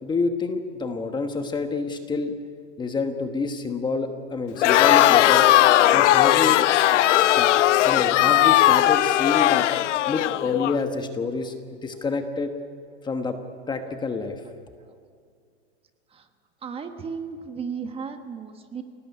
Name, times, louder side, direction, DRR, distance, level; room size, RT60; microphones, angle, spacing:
voice 1, 0.0-2.3 2.8-5.5 5.9-6.6 7.2-7.5 7.8-9.7 10.1-12.5 13.0-13.4 13.7-14.4, left 4 dB, 10° left, 6 dB, 1.3 m, -28 dB
Crowd, 4.6-10.8, left 13 dB, 75° left, 0.9 m, -18 dB
voice 2, 16.6-18.8, right 6 dB, 15° right, 7 dB, 1.3 m, -34 dB
28.5 x 18.5 x 9.6 m, 2.3 s
supercardioid pair, 155°, 36 cm